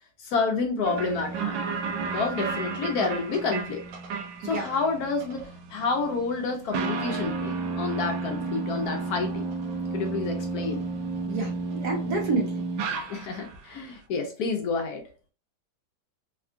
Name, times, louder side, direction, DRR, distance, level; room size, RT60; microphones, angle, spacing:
voice 1, 0.2-1.6 2.0-3.8 4.4-9.5 9.9-10.8 13.1-15.0, left 4 dB, 65° left, 3 dB, 1.1 m, -29 dB
sound 1, 0.8-13.6, right 4 dB, 85° right, 1.2 m, -32 dB
voice 2, 11.3-12.5, right 4 dB, 70° right, 0 dB, 1.5 m, -28 dB
3.5 x 2.3 x 2.4 m, 0.36 s
omnidirectional pair, 1.9 m